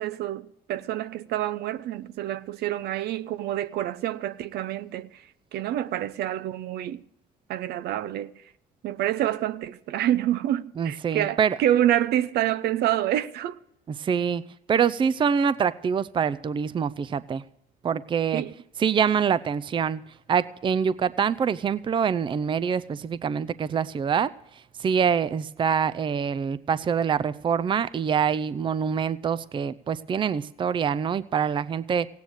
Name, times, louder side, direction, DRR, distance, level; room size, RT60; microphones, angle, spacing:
voice 1, 0.0-7.0 7.5-8.3 8.8-13.6 18.3-18.5, right 12 dB, 75° right, 0.7 m, -27 dB
voice 2, 10.8-11.6 14.0-14.4 14.7-17.4 17.8-18.4 18.8-20.0 20.3-24.3 24.8-32.1, right 7 dB, 30° right, 0.5 m, -25 dB
16.5 x 9.4 x 6.5 m
cardioid pair, 110°, 17 cm